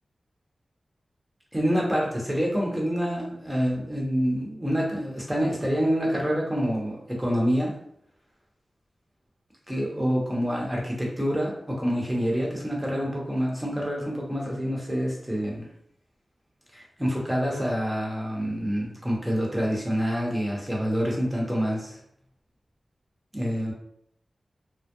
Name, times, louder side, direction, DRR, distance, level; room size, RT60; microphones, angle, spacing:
voice 1, 1.5-7.7 9.7-15.7 16.7-22.0 23.3-23.7, equal, 15° right, -2 dB, 0.9 m, -27 dB
2.2 x 2.0 x 2.9 m, 0.69 s
cardioid pair, 50°, 0 cm